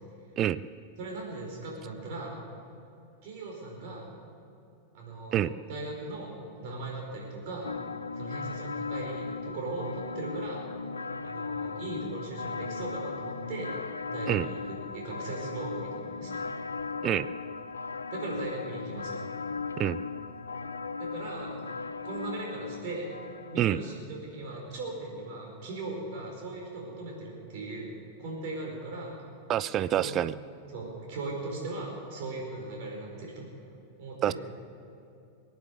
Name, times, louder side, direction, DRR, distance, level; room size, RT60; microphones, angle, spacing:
voice 1, 1.0-2.4 3.2-4.1 4.9-5.4 5.7-7.7 8.2-10.6 11.2-13.7 14.1-14.6 14.9-16.4 18.1-19.2 21.0-21.6 22.0-23.1 23.5-27.9 28.2-29.2 29.9-30.1 30.7-33.5 34.0-34.3, right 2 dB, 50° right, -1 dB, 4.9 m, -38 dB
sound 1, 7.6-23.6, left 4 dB, 75° left, 0.5 m, -37 dB
voice 2, 29.5-30.3 34.2-34.3, right 11 dB, 30° right, 16 dB, 0.4 m, -26 dB
22.5 x 9.5 x 6.9 m, 2.7 s
figure-of-eight pair, 90°, 0 cm